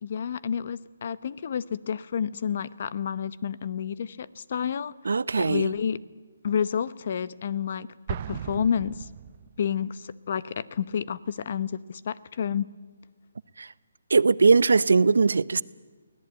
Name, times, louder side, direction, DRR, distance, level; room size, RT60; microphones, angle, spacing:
voice 1, 0.0-4.9 5.4-6.0 6.4-9.1 9.6-12.7, left 7 dB, 50° left, 0.9 m, -30 dB
voice 2, 5.0-5.7 13.6-13.7 14.1-15.6, right 4 dB, 85° right, 0.7 m, -20 dB
Explosion, 8.1-9.8, right 9 dB, 35° right, 0.7 m, -36 dB
23.5 x 17.5 x 9.0 m
hypercardioid pair, 160°, 0 cm